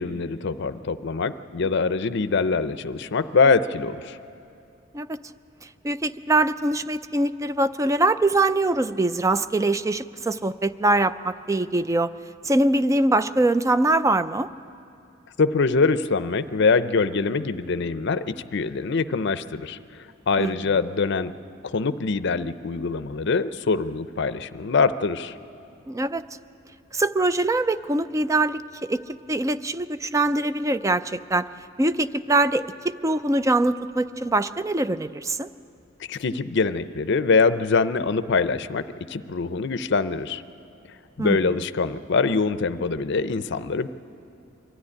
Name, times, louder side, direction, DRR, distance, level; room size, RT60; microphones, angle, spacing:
voice 1, 0.0-4.2 15.4-19.8 20.3-21.3 21.6-25.4 36.1-40.4 41.2-43.9, left 4 dB, 60° left, 12 dB, 0.6 m, -24 dB
voice 2, 5.8-12.1 12.4-14.5 20.4-20.5 25.9-26.2 26.9-29.0 29.3-31.5 31.8-35.5 41.2-41.4, right 2 dB, 15° right, 13 dB, 0.4 m, -23 dB
23.0 x 13.0 x 9.9 m, 2.6 s
head